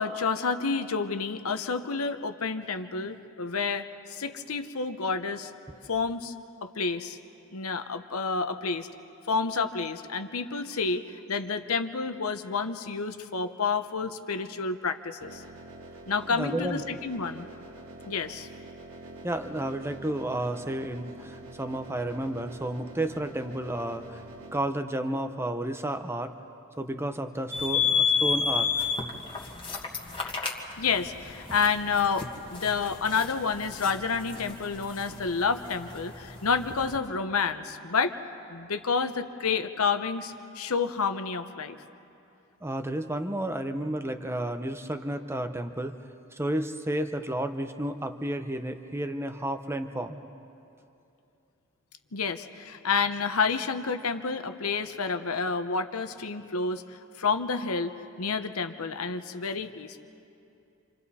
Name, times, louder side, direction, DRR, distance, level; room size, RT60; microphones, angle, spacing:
voice 1, 0.0-5.5 5.9-6.3 6.6-7.2 7.5-8.9 9.3-15.4 16.1-17.5 18.1-18.5 30.8-38.1 38.5-41.8 52.1-56.8 57.2-57.9 58.2-60.0, left 5 dB, 80° left, 9 dB, 0.9 m, -29 dB
sound 1, 15.2-24.6, right 2 dB, 75° right, 1.6 m, -46 dB
voice 2, 16.3-16.8 19.2-24.2 24.5-26.3 26.8-28.7 42.6-45.9 46.3-50.2, right 1 dB, 10° right, 7 dB, 0.8 m, -32 dB
sound 2, 27.5-37.0, left 6 dB, 25° left, 1.7 m, -31 dB
27.5 x 27.0 x 4.3 m, 2.7 s
head